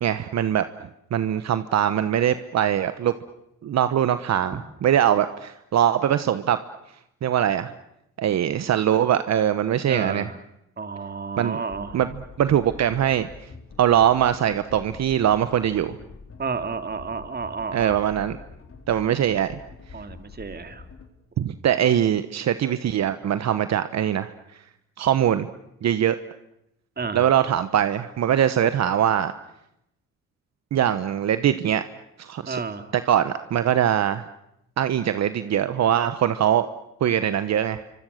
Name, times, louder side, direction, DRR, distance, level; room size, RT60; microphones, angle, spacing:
voice 1, 0.0-0.6 1.1-3.1 3.6-6.6 7.2-7.7 8.2-10.3 11.4-11.6 11.9-12.1 12.4-13.3 13.8-16.0 17.7-18.4 18.9-19.5 21.4-24.3 25.0-25.5 25.8-26.2 27.1-29.3 30.7-31.8 32.2-32.6 32.9-34.2 34.8-36.7 37.0-37.8, right 10 dB, 60° right, 12 dB, 1.1 m, -22 dB
voice 2, 9.9-10.4 10.8-12.0 16.4-18.0 19.9-20.8 27.0-27.2 32.5-32.9, right 4 dB, 30° right, 9 dB, 2.5 m, -31 dB
sound 1, 11.7-21.1, left 4 dB, 45° left, 4.2 m, -45 dB
28.0 x 25.0 x 6.6 m, 0.82 s
cardioid pair, 90°, 30 cm